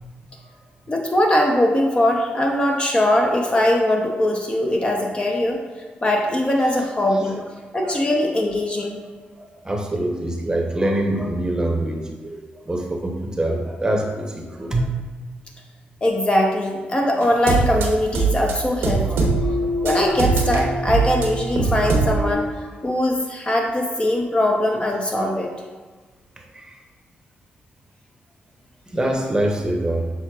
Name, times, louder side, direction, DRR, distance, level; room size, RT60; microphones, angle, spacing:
voice 1, 0.9-5.6 6.0-7.4 7.7-9.0 16.0-19.3 19.8-25.5, left 1 dB, 25° left, 1 dB, 0.6 m, -21 dB
voice 2, 9.6-14.9 19.0-19.9 26.5-26.8 28.9-30.1, right 1 dB, 20° right, 1 dB, 0.8 m, -25 dB
sound 1, 17.2-22.3, right 3 dB, 85° right, 0.7 m, -22 dB
6.2 x 3.6 x 2.3 m, 1.4 s
cardioid pair, 75°, 4 cm